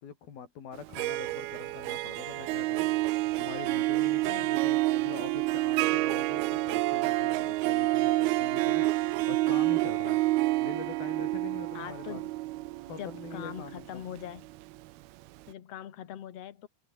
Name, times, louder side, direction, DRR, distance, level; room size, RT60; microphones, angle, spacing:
voice 1, 0.0-2.9 3.4-10.2 10.6-12.2 12.8-14.1, left 7 dB, 70° left, 5.3 m, -44 dB
Harp, 0.8-14.7, right 18 dB, 90° right, 2.7 m, -28 dB
voice 2, 11.7-12.3 13.0-14.5 15.5-16.7, left 10 dB, 50° left, 2.2 m, -42 dB
omnidirectional pair, 4.4 m